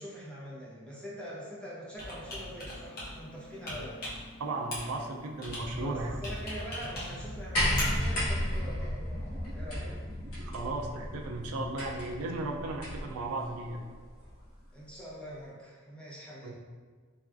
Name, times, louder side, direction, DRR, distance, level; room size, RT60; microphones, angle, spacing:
voice 1, 0.0-4.0 5.7-10.0 14.7-16.5, equal, 5° left, -7 dB, 0.6 m, -44 dB
Computer keyboard, 1.9-8.6, left 1 dB, 45° left, 0.8 m, -41 dB
voice 2, 4.4-6.2 10.4-13.8 16.4-16.5, right 2 dB, 85° right, 1 dB, 0.4 m, -35 dB
sound 1, 5.5-14.3, equal, 30° right, 0.7 m, -45 dB
sound 2, 7.5-13.1 14.2-14.3, equal, 90° left, 1.1 m, -33 dB
3.4 x 2.3 x 2.5 m, 1.5 s
head